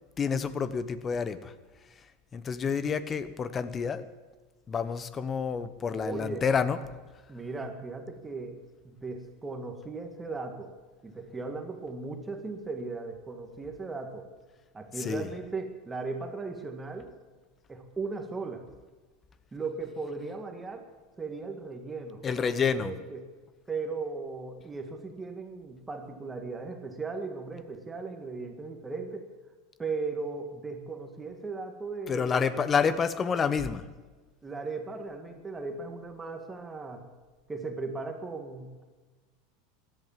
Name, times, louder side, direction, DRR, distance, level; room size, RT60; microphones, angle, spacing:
voice 1, 0.2-1.5 2.3-4.0 4.7-6.8 15.0-15.3 22.2-22.9 32.1-33.8, left 6 dB, 30° left, 14 dB, 1.0 m, -28 dB
voice 2, 5.9-6.4 7.3-10.7 11.0-14.3 14.7-17.1 17.7-18.7 19.5-20.9 21.2-22.2 22.5-23.3 23.7-29.3 29.8-32.7 34.4-37.1 37.5-38.8, right 3 dB, 15° right, 4 dB, 1.9 m, -37 dB
16.0 x 11.0 x 7.4 m, 1.3 s
hypercardioid pair, 105°, 0 cm